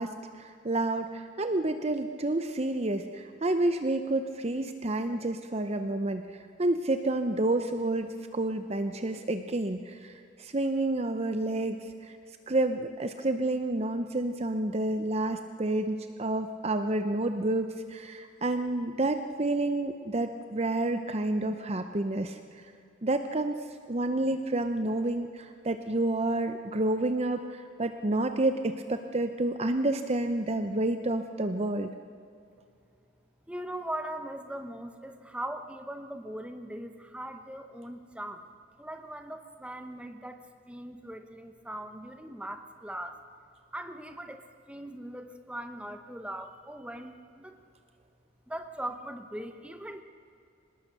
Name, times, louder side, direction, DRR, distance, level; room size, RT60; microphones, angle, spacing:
voice 1, 0.0-6.2 6.6-10.1 10.4-11.8 12.0-12.1 12.5-22.4 23.0-23.6 23.9-31.9, right 2 dB, 35° right, 8 dB, 0.7 m, -29 dB
voice 2, 33.5-38.4 38.8-43.2 43.7-47.6 48.5-50.0, right 1 dB, 5° right, 7 dB, 1.1 m, -40 dB
24.0 x 19.5 x 6.7 m, 2.5 s
head